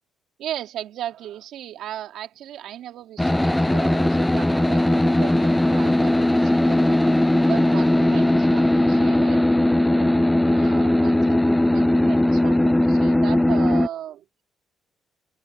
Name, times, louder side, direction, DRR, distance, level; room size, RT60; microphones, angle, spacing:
voice 1, 0.4-14.4, right 11 dB, 75° right, 2.9 m, -37 dB
sound 1, 3.2-13.9, left 1 dB, 5° left, 0.3 m, -19 dB
open air
cardioid pair, 120°, 0 cm